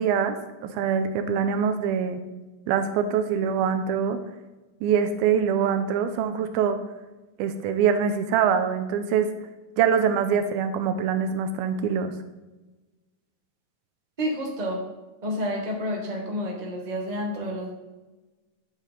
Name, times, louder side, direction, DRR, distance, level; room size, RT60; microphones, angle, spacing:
voice 1, 0.0-2.2 2.7-4.2 4.8-6.8 7.4-9.3 9.8-12.1, right 7 dB, 85° right, 9 dB, 2.5 m, -24 dB
voice 2, 14.2-14.8 15.2-17.7, equal, 15° right, -1 dB, 1.3 m, -29 dB
13.0 x 6.6 x 5.3 m, 1.2 s
omnidirectional pair, 4.4 m